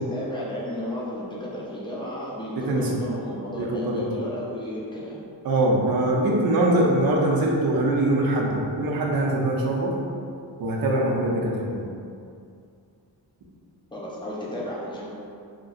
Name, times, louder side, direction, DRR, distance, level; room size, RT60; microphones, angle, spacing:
voice 1, 0.0-5.2 13.9-15.1, left 1 dB, 10° left, -6 dB, 0.4 m, -33 dB
voice 2, 3.6-4.1 5.4-10.0 10.6-11.9, right 1 dB, 55° right, -1 dB, 0.5 m, -23 dB
2.9 x 2.6 x 2.4 m, 2.4 s
wide cardioid pair, 165°, 44 cm